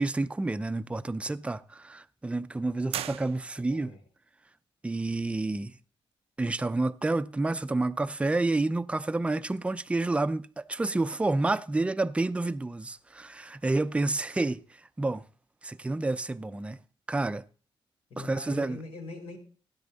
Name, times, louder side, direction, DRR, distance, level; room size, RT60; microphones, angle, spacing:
voice 1, 0.0-3.9 4.8-5.7 6.4-14.6 15.0-15.3 15.6-16.8 17.1-17.4 18.2-18.8, right 2 dB, 10° right, 0.5 m, -29 dB
sound 1, 2.9-3.9, right 10 dB, 90° right, 0.6 m, -37 dB
voice 2, 3.7-4.0 18.1-19.4, left 3 dB, 85° left, 4.4 m, -42 dB
16.5 x 9.8 x 4.0 m
cardioid pair, 115°, 10 cm